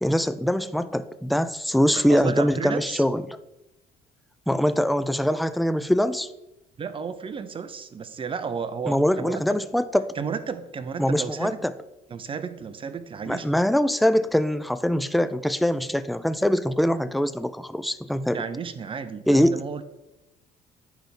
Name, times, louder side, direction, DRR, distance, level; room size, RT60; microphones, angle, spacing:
voice 1, 0.0-3.4 4.5-6.3 8.9-10.1 11.0-11.7 13.3-18.5 19.3-19.6, equal, ahead, 13 dB, 0.3 m, -23 dB
voice 2, 2.1-3.0 6.8-9.6 10.2-11.6 12.1-13.5 18.3-19.8, right 6 dB, 30° right, 11 dB, 0.7 m, -33 dB
9.2 x 3.5 x 5.9 m, 0.95 s
cardioid pair, 110°, 17 cm